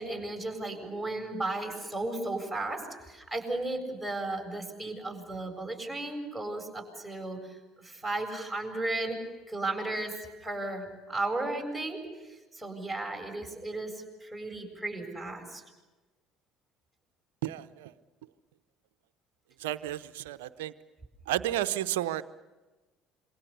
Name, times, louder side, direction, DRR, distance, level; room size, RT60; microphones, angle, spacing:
voice 1, 0.0-9.2 9.5-10.1 10.4-12.0 12.3-13.9 14.2-15.6, right 2 dB, ahead, 2 dB, 7.6 m, -35 dB
voice 2, 17.4-17.9 19.6-20.7 21.3-22.2, right 13 dB, 75° right, 12 dB, 0.7 m, -32 dB
27.0 x 24.0 x 6.8 m, 1.2 s
hypercardioid pair, 60°, 0 cm